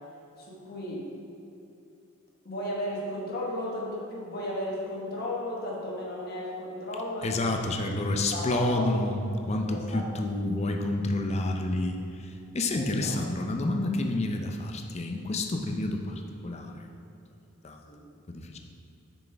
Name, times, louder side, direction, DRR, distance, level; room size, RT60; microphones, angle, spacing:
voice 1, 0.4-1.1 2.4-7.5 8.3-8.9 9.7-10.0 12.7-13.2 17.9-18.0, left 1 dB, 45° left, -4 dB, 1.4 m, -34 dB
voice 2, 7.2-16.9 17.6-17.8 18.3-18.6, left 2 dB, 30° left, 3 dB, 0.5 m, -29 dB
7.2 x 6.1 x 3.4 m, 2.8 s
head